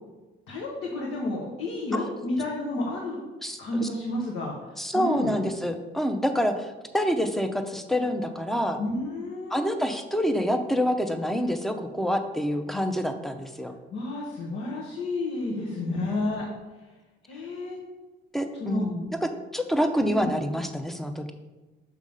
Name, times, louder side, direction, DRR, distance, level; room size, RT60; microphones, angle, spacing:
voice 1, 0.5-3.2 3.6-5.3 8.8-9.7 13.9-16.5 17.2-17.8 18.6-18.9 20.1-20.3, left 2 dB, 80° left, -2 dB, 1.1 m, -31 dB
voice 2, 3.4-3.9 4.8-8.8 9.5-13.7 15.9-16.1 18.3-19.1 19.5-21.3, equal, ahead, 6 dB, 0.6 m, -27 dB
6.4 x 3.5 x 5.3 m, 1.2 s
cardioid pair, 90°, 20 cm